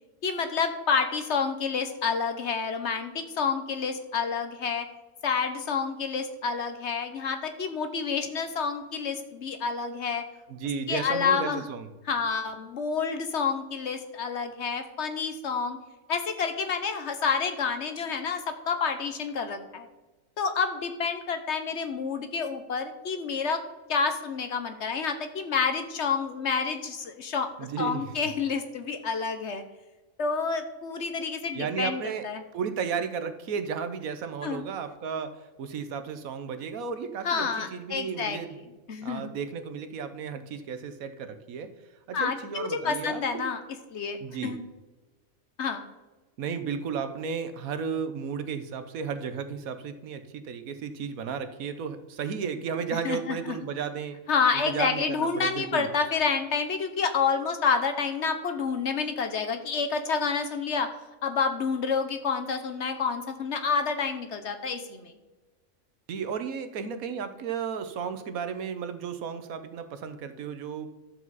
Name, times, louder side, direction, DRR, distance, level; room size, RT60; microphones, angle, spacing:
voice 1, 0.2-4.9 5.2-10.3 10.9-11.6 12.1-15.8 16.1-19.9 20.4-23.6 23.9-27.5 27.8-29.6 30.2-32.4 34.4-34.6 37.2-38.4 38.9-39.3 42.1-43.6 43.9-44.6 45.6-45.9 53.0-53.6 54.3-60.9 61.2-65.1, left 5 dB, 60° left, 8 dB, 1.1 m, -29 dB
voice 2, 10.5-11.9 27.6-28.1 31.5-32.3 32.5-35.3 35.6-38.6 39.0-41.7 42.1-43.4 44.2-44.5 46.4-54.2 54.5-55.9 66.1-70.9, right 6 dB, 90° right, 9 dB, 1.3 m, -34 dB
12.0 x 7.4 x 4.0 m, 1.2 s
omnidirectional pair, 1.4 m